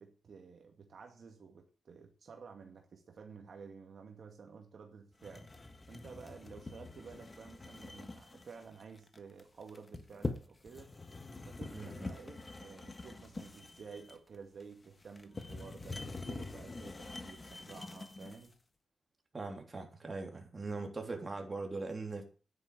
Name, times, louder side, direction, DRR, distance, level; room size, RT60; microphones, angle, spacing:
voice 1, 0.0-5.5 5.9-10.9 11.5-18.5, right 5 dB, 60° right, 2.2 m, -52 dB
sound 1, 5.2-18.5, left 3 dB, 25° left, 1.5 m, -45 dB
voice 2, 11.7-12.1 19.3-22.2, right 3 dB, 25° right, 3.3 m, -41 dB
10.5 x 9.6 x 7.9 m
wide cardioid pair, 120°, 0 cm